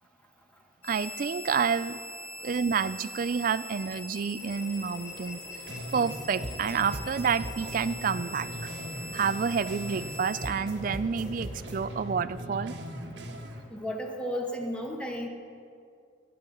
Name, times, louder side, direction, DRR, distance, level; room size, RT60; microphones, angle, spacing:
sound 1, 0.8-10.5, left 2 dB, 55° left, 3.6 m, -42 dB
voice 1, 0.8-2.0 2.4-5.4 5.9-8.7 9.1-12.7, right 6 dB, 50° right, 15 dB, 0.4 m, -29 dB
sound 2, 4.4-12.1, left 1 dB, 70° left, 2.4 m, -49 dB
sound 3, 5.7-6.2 6.4-10.2 10.4-13.6, equal, 70° right, 1.5 m, -39 dB
voice 2, 13.7-15.3, equal, 5° left, 1 dB, 1.1 m, -33 dB
20.5 x 10.0 x 3.9 m, 2.3 s
head